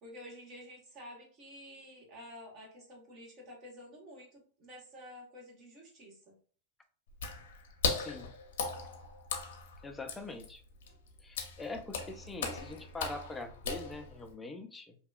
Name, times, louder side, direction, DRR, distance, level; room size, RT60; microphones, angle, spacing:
voice 1, 0.0-6.2, left 1 dB, 45° right, -2 dB, 1.1 m, -50 dB
Water / Splash splatter, 7.1-14.3, left 5 dB, 75° left, 0.6 m, -38 dB
voice 2, 7.9-8.3 9.8-10.6 11.2-15.0, left 2 dB, 10° left, 6 dB, 0.4 m, -43 dB
2.7 x 2.3 x 2.2 m, 0.42 s
hypercardioid pair, 115°, 0 cm